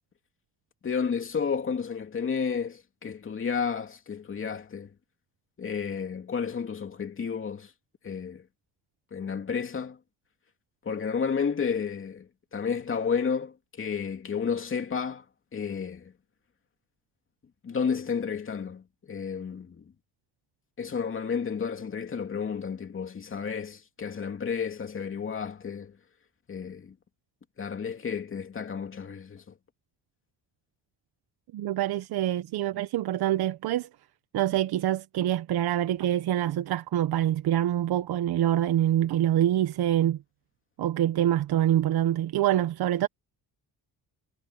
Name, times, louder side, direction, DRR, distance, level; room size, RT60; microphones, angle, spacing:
voice 1, 0.8-4.9 5.6-7.7 8.0-8.4 9.1-10.0 10.8-15.2 15.5-16.1 17.6-19.8 20.8-26.0 26.5-26.9 27.6-29.4, left 6 dB, 30° left, 2.8 m, -31 dB
voice 2, 31.5-33.9 34.3-40.2 40.8-43.1, right 12 dB, 70° right, 1.1 m, -25 dB
cardioid pair, 165°, 40 cm